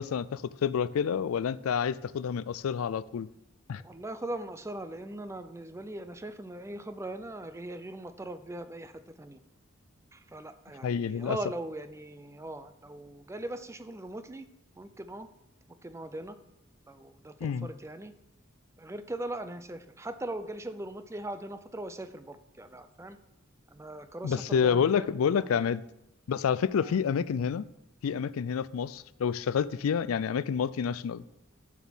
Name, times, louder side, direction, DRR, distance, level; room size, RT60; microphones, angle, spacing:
voice 1, 0.0-3.3 3.7-3.8 10.8-11.4 17.4-17.7 24.2-25.8 26.3-27.6 28.0-31.2, left 7 dB, 85° left, 0.4 m, -28 dB
voice 2, 3.8-9.4 10.1-14.5 14.7-15.3 15.8-16.4 16.9-18.1 18.8-23.2 23.7-25.7 26.8-27.0, right 1 dB, 15° right, 0.5 m, -40 dB
7.2 x 6.1 x 7.2 m
head